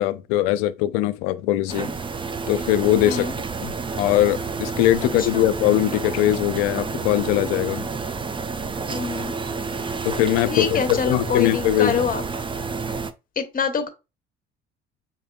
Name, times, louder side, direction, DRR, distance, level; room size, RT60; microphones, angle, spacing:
voice 1, 0.0-1.9 2.5-3.3 3.6-7.9 10.0-12.0, left 14 dB, 75° left, 0.5 m, -21 dB
sound 1, 1.7-13.1, right 4 dB, 15° right, 0.4 m, -30 dB
voice 2, 3.0-3.4 5.2-5.5 8.9-9.3 10.5-12.2 13.4-13.9, left 6 dB, 30° left, 1.1 m, -26 dB
5.5 x 3.4 x 2.3 m
hypercardioid pair, 60°, 30 cm